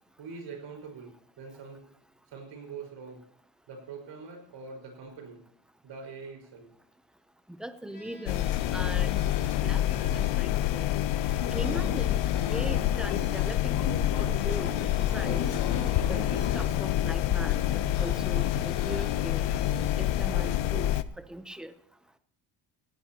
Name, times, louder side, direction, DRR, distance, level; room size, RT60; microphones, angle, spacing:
voice 1, 0.2-1.8 2.3-3.2 3.7-5.4 5.8-6.7, right 5 dB, 70° right, 1 dB, 5.1 m, -43 dB
voice 2, 7.6-8.4 8.7-9.2 9.6-9.8 10.1-10.9 11.5-12.2 12.5-15.4 16.1-17.6 18.0-19.4 20.0-20.9 21.3-21.7, right 1 dB, ahead, 10 dB, 0.6 m, -39 dB
sound 1, 7.9-10.8 11.1-14.0 14.3-17.2 17.5-20.4, left 2 dB, 25° left, 4.3 m, -51 dB
sound 2, 8.3-21.0, left 12 dB, 75° left, 0.7 m, -27 dB
sound 3, 11.4-13.5 13.7-16.6, left 6 dB, 60° left, 2.3 m, -37 dB
18.0 x 16.0 x 2.9 m, 0.63 s
cardioid pair, 155°, 45 cm